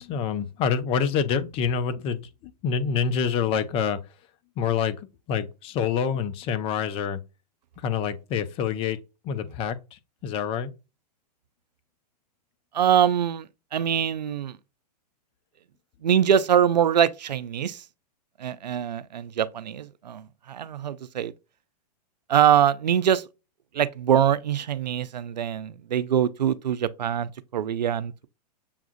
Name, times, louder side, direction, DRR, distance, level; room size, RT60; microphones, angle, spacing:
voice 1, 0.0-2.2 2.6-4.0 4.6-5.0 5.3-7.2 7.8-9.0 9.2-10.7, left 7 dB, 25° left, 0.5 m, -26 dB
voice 2, 12.7-14.6 16.0-17.8 18.4-21.3 22.3-23.2 23.7-28.3, right 9 dB, 85° right, 0.5 m, -23 dB
7.0 x 2.4 x 2.5 m
hypercardioid pair, 125°, 21 cm